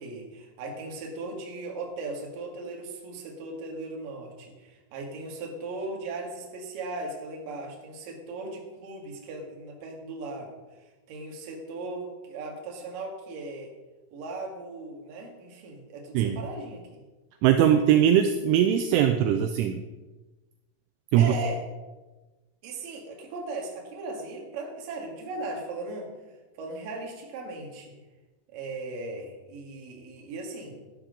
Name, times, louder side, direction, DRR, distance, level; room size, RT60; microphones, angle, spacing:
voice 1, 0.0-10.5 11.1-13.7 14.1-17.0 21.2-21.6 22.6-26.1 26.6-28.0 28.5-30.8, right 2 dB, 60° right, 1 dB, 2.6 m, -37 dB
voice 2, 17.4-19.8 21.1-21.3, right 10 dB, 85° right, 7 dB, 2.9 m, -21 dB
12.0 x 11.5 x 3.9 m, 1.2 s
omnidirectional pair, 6.0 m